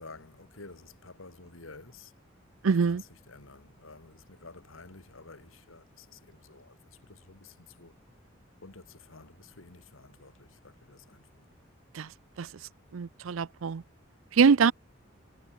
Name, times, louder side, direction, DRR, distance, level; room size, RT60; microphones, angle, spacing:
voice 1, 0.0-2.1 2.6-8.0 8.6-11.4, left 3 dB, 85° left, 2.4 m, -51 dB
voice 2, 2.6-3.0 11.9-12.1 12.4-12.5 12.9-13.8 14.3-14.7, right 5 dB, 85° right, 0.5 m, -23 dB
head